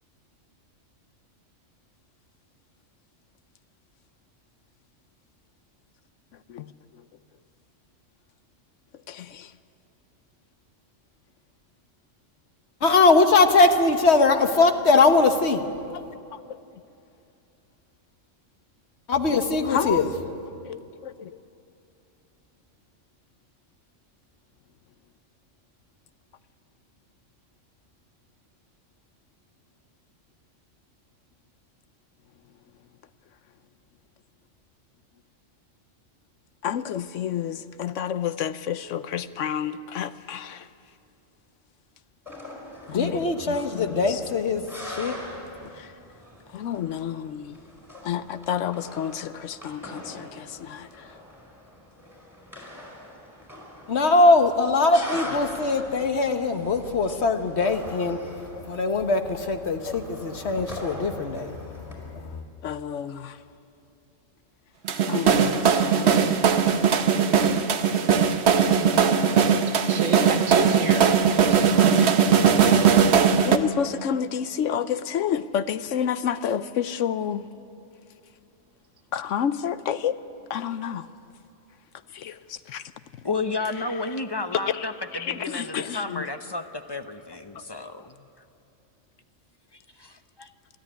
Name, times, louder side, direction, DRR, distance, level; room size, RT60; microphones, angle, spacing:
voice 1, 9.1-9.5 15.9-16.0 16.3-16.8 19.7-20.1 20.6-21.4 36.6-40.7 42.9-44.2 45.7-45.9 46.5-47.6 48.0-51.2 54.9-55.4 59.9-60.0 62.6-63.4 65.1-66.4 73.4-77.5 79.1-80.2 80.5-81.1 82.1-82.9 83.2-83.3 83.6-84.2 84.5-86.3, left 9 dB, 75° left, 1.0 m, -30 dB
voice 2, 12.8-15.7 19.1-20.0 42.9-45.2 45.6-45.7 53.9-58.2 58.7-62.4, left 3 dB, 60° left, 1.4 m, -21 dB
sound 1, 42.3-61.9, left 1 dB, ahead, 5.0 m, -42 dB
sound 2, 64.9-73.6, right 7 dB, 60° right, 1.1 m, -19 dB
voice 3, 69.7-72.4, right 3 dB, 80° right, 1.7 m, -32 dB
voice 4, 83.2-84.9 85.2-88.0 90.4-90.5, left 3 dB, 25° left, 0.8 m, -31 dB
23.0 x 13.5 x 10.0 m
omnidirectional pair, 1.3 m